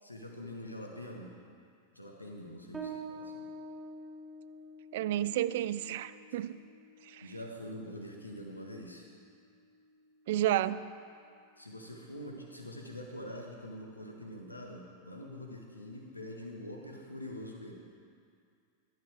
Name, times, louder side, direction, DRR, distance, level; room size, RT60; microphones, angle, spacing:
voice 1, 0.0-1.4 1.9-3.5 7.2-9.1 11.6-17.7, left 1 dB, 85° left, 1 dB, 1.5 m, -44 dB
Bass guitar, 2.7-9.9, right 2 dB, 15° right, 1.7 m, -48 dB
voice 2, 4.9-6.6 7.1-7.2 10.3-10.8, right 12 dB, 55° right, 15 dB, 0.4 m, -31 dB
16.5 x 11.5 x 3.5 m, 2.3 s
figure-of-eight pair, 90°, 0 cm